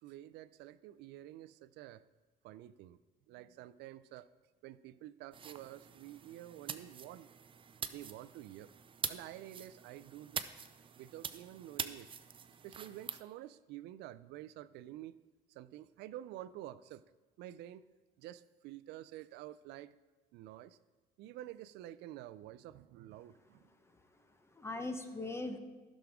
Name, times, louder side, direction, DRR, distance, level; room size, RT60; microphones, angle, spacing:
voice 1, 0.0-2.0 2.4-3.0 3.3-4.3 4.6-7.3 7.9-8.7 9.1-10.5 11.0-12.1 12.6-15.2 15.5-17.0 17.4-17.8 18.2-19.9 20.3-20.8 21.2-23.7, right 13 dB, 85° right, 15 dB, 0.4 m, -49 dB
sound 1, 5.3-13.2, right 7 dB, 30° right, 0.5 m, -45 dB
voice 2, 23.8-25.6, left 2 dB, 15° left, 7 dB, 0.9 m, -42 dB
15.0 x 6.2 x 3.6 m, 1.2 s
cardioid pair, 110°, 17 cm